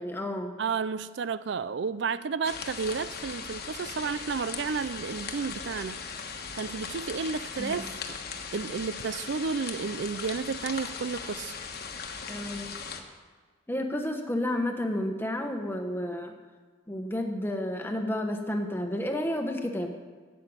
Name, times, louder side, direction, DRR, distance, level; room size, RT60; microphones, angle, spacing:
voice 1, 0.0-0.5 7.6-7.9 12.3-12.8 13.7-16.3 16.9-19.9, left 1 dB, 10° left, 4 dB, 1.1 m, -31 dB
voice 2, 0.6-8.2 8.5-11.5, right 5 dB, 65° right, 15 dB, 0.4 m, -32 dB
sound 1, 2.4-13.0, left 5 dB, 50° left, 1.3 m, -38 dB
12.5 x 7.7 x 8.8 m, 1.5 s
head